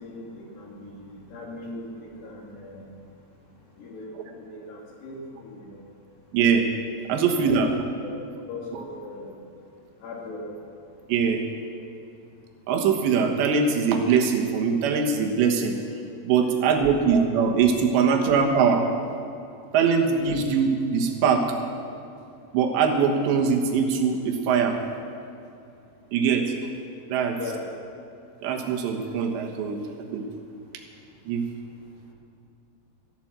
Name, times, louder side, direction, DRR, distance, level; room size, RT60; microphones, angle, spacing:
voice 1, 0.0-1.9 2.2-2.9 3.8-5.8 7.2-8.1 8.5-9.3 10.0-10.4 16.8-17.3 27.3-27.6, left 2 dB, 75° left, -2 dB, 4.7 m, -39 dB
voice 2, 6.3-6.7 7.1-7.7 11.1-11.4 12.7-15.8 16.2-18.9 19.7-21.5 22.5-24.8 26.1-26.5 27.1-27.4 28.4-29.8 30.1-30.2 31.3-31.5, right 6 dB, 90° right, 3 dB, 3.6 m, -22 dB
14.5 x 11.5 x 7.5 m, 2.6 s
omnidirectional pair, 4.9 m